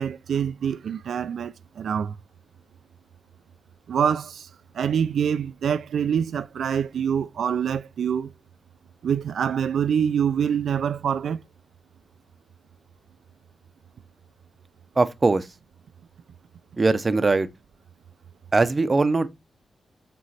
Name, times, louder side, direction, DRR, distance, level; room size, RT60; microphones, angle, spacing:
voice 1, 0.0-2.2 3.9-4.5 4.7-8.3 9.0-11.4, right 8 dB, 80° right, 0.3 m, -25 dB
voice 2, 15.0-15.5 16.8-17.5 18.5-19.3, right 3 dB, 25° right, 0.5 m, -20 dB
7.7 x 3.0 x 4.1 m
wide cardioid pair, 160°, 0 cm